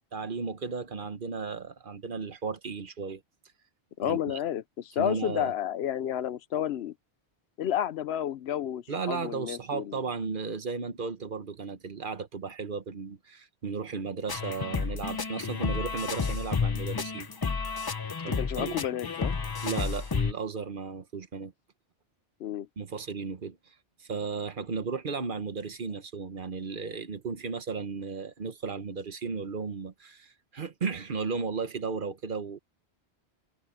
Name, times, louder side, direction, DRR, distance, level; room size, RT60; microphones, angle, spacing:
voice 1, 0.0-3.2 4.0-4.4 5.0-5.5 8.9-17.3 18.2-18.8 19.6-21.5 22.8-23.7 24.0-32.6, right 5 dB, 55° right, 1.2 m, -35 dB
voice 2, 4.0-6.9 7.6-10.0 18.4-19.4 22.4-22.7, left 10 dB, 80° left, 0.9 m, -31 dB
sound 1, 14.3-20.3, left 5 dB, 30° left, 0.4 m, -31 dB
omnidirectional pair, 1.1 m